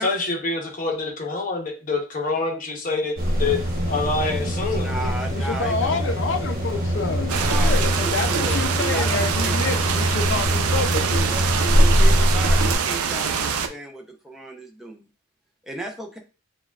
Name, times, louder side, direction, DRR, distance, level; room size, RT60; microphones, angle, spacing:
voice 1, 0.0-3.1 3.4-3.6 3.8-5.1, left 3 dB, 35° left, 1 dB, 0.9 m, -26 dB
sound 1, 3.2-12.7, equal, 40° right, 1.1 m, -22 dB
voice 2, 4.7-6.1 7.4-9.6 11.1-15.1 15.6-16.2, right 2 dB, ahead, 0 dB, 0.6 m, -34 dB
voice 3, 5.3-11.3, left 4 dB, 55° left, 7 dB, 0.5 m, -28 dB
sound 2, 7.3-13.7, right 6 dB, 85° right, 0.5 m, -25 dB
6.6 x 2.4 x 2.3 m, 0.35 s
head